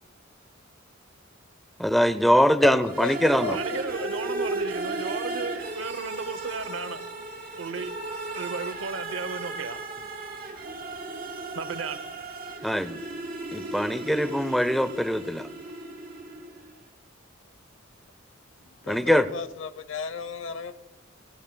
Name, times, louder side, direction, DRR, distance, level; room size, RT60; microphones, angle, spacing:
voice 1, 1.8-3.6 12.6-13.0 13.5-15.5 18.9-19.3, equal, ahead, 0.5 m, -22 dB
voice 2, 2.6-4.1 18.6-20.7, left 5 dB, 70° left, 0.8 m, -34 dB
sound 1, 2.8-16.7, right 2 dB, 55° right, 2.9 m, -35 dB
voice 3, 3.5-7.0 7.6-7.9 8.3-10.1 11.5-12.0, right 4 dB, 75° right, 0.8 m, -34 dB
28.5 x 15.5 x 2.3 m
head